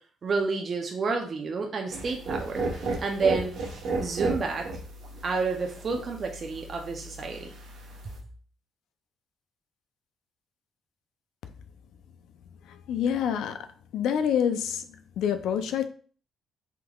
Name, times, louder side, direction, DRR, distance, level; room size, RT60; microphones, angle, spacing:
voice 1, 0.2-2.6 3.0-3.5 4.0-4.7 5.2-7.5, right 4 dB, 45° right, 0.5 m, -29 dB
sound 1, 1.9-8.2, right 3 dB, 70° right, 1.0 m, -34 dB
voice 2, 12.7-13.6 13.9-14.9 15.2-15.9, left 8 dB, 85° left, 0.3 m, -27 dB
3.5 x 3.0 x 2.3 m
cardioid pair, 90°, 0 cm